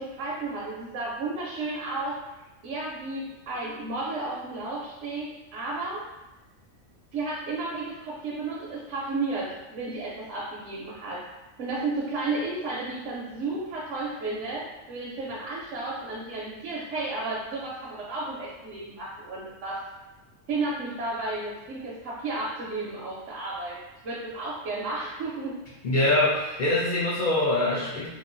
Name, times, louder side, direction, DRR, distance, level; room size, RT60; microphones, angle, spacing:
voice 1, 0.0-2.1 2.6-6.0 7.1-11.2 11.6-19.8 20.5-23.8 24.0-25.5, right 3 dB, 75° right, -6 dB, 0.9 m, -33 dB
voice 2, 25.8-28.1, left 2 dB, 55° left, -6 dB, 0.6 m, -24 dB
2.9 x 2.2 x 2.5 m, 1.0 s
omnidirectional pair, 1.3 m